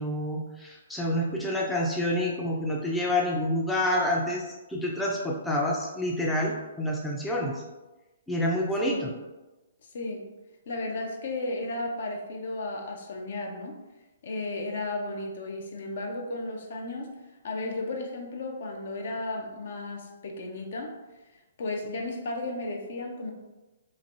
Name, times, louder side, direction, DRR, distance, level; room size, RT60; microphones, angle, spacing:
voice 1, 0.0-7.6 8.3-9.1, left 1 dB, 5° left, -3 dB, 0.4 m, -28 dB
voice 2, 9.9-10.3 10.7-13.8 14.2-17.1 17.4-20.9 21.6-23.3, left 2 dB, 55° left, 1 dB, 0.5 m, -34 dB
3.0 x 2.5 x 2.6 m, 1.1 s
figure-of-eight pair, 125°, 0 cm